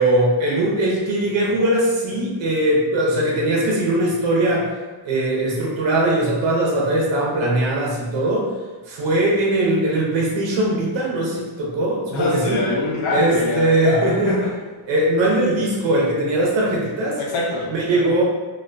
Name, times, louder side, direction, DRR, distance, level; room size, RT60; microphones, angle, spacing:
voice 1, 0.0-4.7 5.0-8.5 8.9-12.6 13.1-14.3 14.9-17.2 17.7-18.2, right 1 dB, 65° right, -4 dB, 0.7 m, -20 dB
voice 2, 12.1-14.5 17.2-18.1, left 2 dB, 75° left, -3 dB, 0.8 m, -24 dB
2.4 x 2.2 x 2.4 m, 1.3 s
cardioid pair, 135°, 48 cm